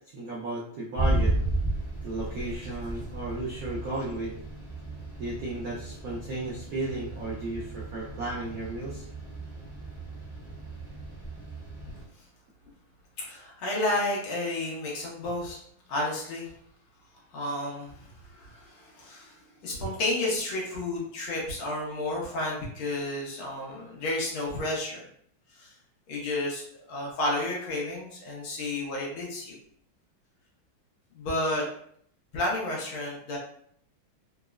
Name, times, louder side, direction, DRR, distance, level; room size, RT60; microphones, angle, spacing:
voice 1, 0.1-1.4 2.0-4.4 5.2-9.1, right 2 dB, 85° right, -5 dB, 0.8 m, -34 dB
sound 1, 0.9-12.0, right 2 dB, 25° left, 0.6 m, -34 dB
voice 2, 13.2-15.6 15.9-16.5 17.3-18.1 18.4-19.3 19.6-25.1 25.6-25.7 26.1-29.6 31.1-31.7 32.3-33.4, left 1 dB, 75° left, -4 dB, 1.7 m, -31 dB
4.0 x 2.0 x 2.3 m, 0.66 s
omnidirectional pair, 2.2 m